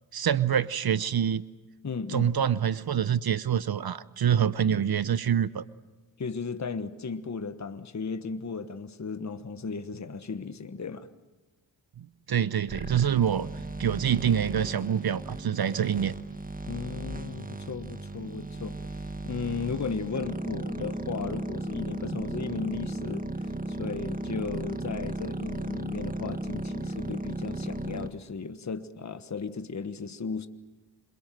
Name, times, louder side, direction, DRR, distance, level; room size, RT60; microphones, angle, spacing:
voice 1, 0.1-1.4 2.1-5.6 12.0-13.5 13.8-16.1, right 9 dB, 55° right, 0.8 m, -26 dB
voice 2, 1.8-2.3 6.2-11.1 16.7-30.5, left 5 dB, 35° left, 1.4 m, -35 dB
sound 1, 12.7-28.1, right 2 dB, 20° right, 1.9 m, -36 dB
27.5 x 22.0 x 7.7 m
cardioid pair, 60°, 45 cm